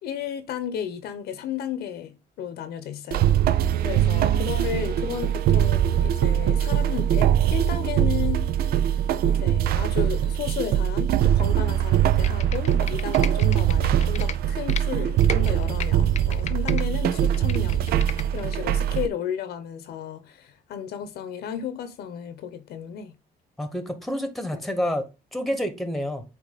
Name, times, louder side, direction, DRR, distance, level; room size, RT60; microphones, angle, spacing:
voice 1, 0.0-8.5 9.2-23.1, left 9 dB, 70° left, 1.0 m, -33 dB
sound 1, 3.1-19.1, right 10 dB, 65° right, 0.5 m, -22 dB
voice 2, 4.0-4.3 23.6-26.2, equal, ahead, 1.2 m, -29 dB
Computer keyboard, 12.1-14.8 15.2-16.8 17.2-18.6 19.0-19.1, left 9 dB, 40° left, 0.5 m, -36 dB
8.4 x 3.0 x 4.1 m
cardioid pair, 110°, 17 cm